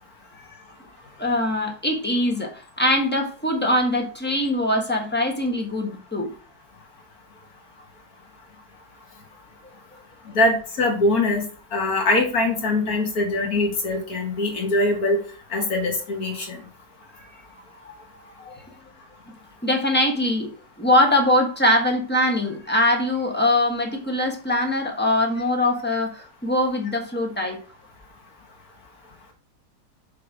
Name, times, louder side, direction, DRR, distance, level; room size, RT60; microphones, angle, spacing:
voice 1, 1.2-6.3 17.2-17.3 17.8-18.6 19.6-20.5 20.8-27.6, left 1 dB, 5° left, 2 dB, 1.2 m, -22 dB
voice 2, 10.3-11.4 11.7-15.2 15.5-16.6, left 2 dB, 60° left, 2 dB, 2.1 m, -22 dB
7.0 x 3.5 x 4.9 m, 0.38 s
omnidirectional pair, 1.9 m